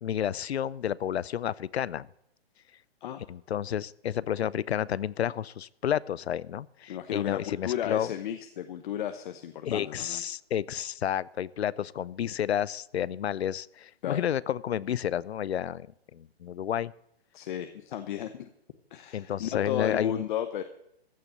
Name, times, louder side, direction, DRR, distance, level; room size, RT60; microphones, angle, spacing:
voice 1, 0.0-2.1 3.3-8.1 9.6-16.9 19.1-20.2, left 10 dB, 85° left, 22 dB, 0.6 m, -31 dB
voice 2, 6.9-10.2 14.0-14.2 17.3-18.5 18.9-20.6, left 10 dB, 50° left, 9 dB, 1.0 m, -34 dB
15.0 x 6.9 x 9.1 m, 0.76 s
hypercardioid pair, 145°, 31 cm